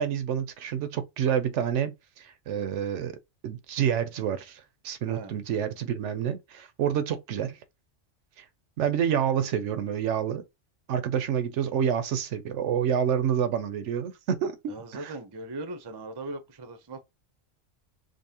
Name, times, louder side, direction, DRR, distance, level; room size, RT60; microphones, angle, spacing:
voice 1, 0.0-3.2 3.4-7.6 8.4-8.5 8.8-10.4 10.9-14.6 14.9-15.1, right 8 dB, 75° right, 0.9 m, -28 dB
voice 2, 14.7-17.0, right 2 dB, 30° right, 0.4 m, -39 dB
5.2 x 2.1 x 2.7 m
omnidirectional pair, 1.3 m